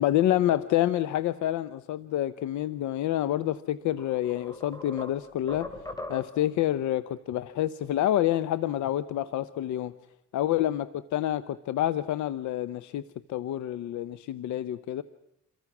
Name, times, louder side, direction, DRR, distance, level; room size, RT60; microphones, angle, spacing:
voice 1, 0.0-5.7 6.1-9.9 10.3-10.9 11.1-13.0 13.3-15.0, left 13 dB, 80° left, 15 dB, 0.8 m, -28 dB
sound 1, 4.0-6.6, left 2 dB, 15° left, 3.6 m, -41 dB
28.0 x 23.5 x 6.1 m, 0.81 s
cardioid pair, 100°, 29 cm